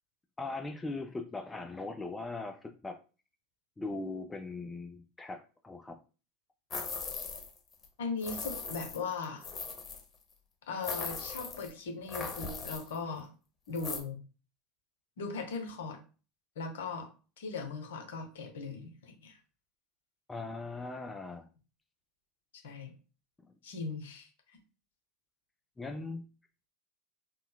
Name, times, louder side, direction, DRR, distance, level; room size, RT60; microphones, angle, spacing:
voice 1, 0.4-3.0 3.8-6.0 20.3-21.5 25.8-26.2, left 3 dB, 15° left, 6 dB, 0.4 m, -40 dB
sound 1, 6.7-7.6 7.8-7.9 8.2-10.0 10.8-11.7 12.1-13.0 13.7-14.0, left 4 dB, 35° left, 0.8 m, -39 dB
voice 2, 8.0-9.4 10.7-13.3 13.7-14.2 15.2-16.0 16.6-17.1 17.4-19.4 22.6-22.9 23.6-24.3, left 4 dB, 75° left, 4 dB, 0.8 m, -38 dB
3.8 x 2.0 x 2.3 m, 0.35 s
hypercardioid pair, 85°, 0 cm